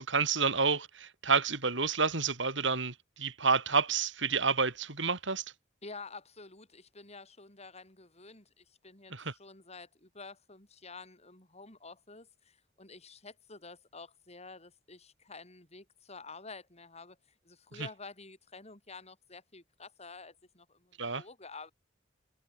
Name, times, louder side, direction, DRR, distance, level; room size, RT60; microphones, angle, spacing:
voice 1, 0.0-5.4 9.1-9.3 21.0-21.2, right 4 dB, 75° right, 4.7 m, -29 dB
voice 2, 5.8-17.2 17.4-21.7, left 3 dB, 35° left, 7.4 m, -50 dB
head